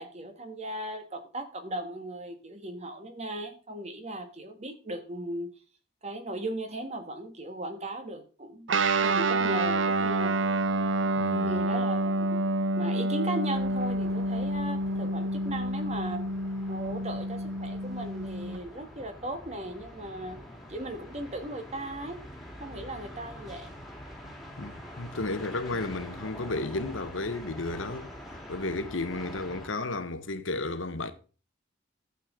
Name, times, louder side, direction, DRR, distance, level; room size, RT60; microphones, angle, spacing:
voice 1, 0.0-5.5 6.0-8.7 9.0-10.4 11.4-12.4 12.7-16.2 16.7-20.4 20.7-22.2 22.6-23.7, right 1 dB, 35° right, 1.5 m, -37 dB
Guitar, 8.7-18.6, right 2 dB, 80° right, 0.8 m, -28 dB
voice 2, 11.2-11.6 24.6-28.1 28.5-31.1, left 2 dB, 85° left, 1.1 m, -33 dB
sound 1, 13.5-29.7, equal, ahead, 2.3 m, -45 dB
12.0 x 8.3 x 3.7 m
head